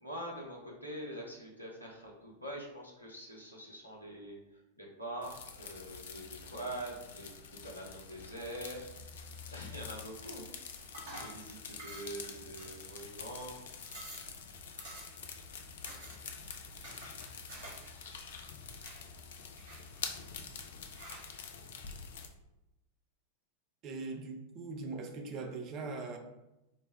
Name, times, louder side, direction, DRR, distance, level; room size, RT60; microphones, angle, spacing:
voice 1, 0.0-4.4 4.8-8.9 9.5-10.6 11.2-13.6, right 1 dB, 85° left, -1 dB, 0.7 m, -44 dB
sound 1, 5.2-22.3, left 6 dB, 60° left, 0.4 m, -47 dB
sound 2, 10.9-11.4 11.8-12.2 12.6-13.2 13.5-13.6 13.8-14.3 14.8-15.3 15.9-16.2 16.8-17.9 18.2-19.0 19.6-20.3 21.0-21.3, right 1 dB, 65° right, 1.3 m, -49 dB
voice 2, 23.8-26.2, right 3 dB, 35° right, 4 dB, 0.5 m, -41 dB
4.0 x 2.1 x 3.4 m, 0.95 s
figure-of-eight pair, 90°, 0 cm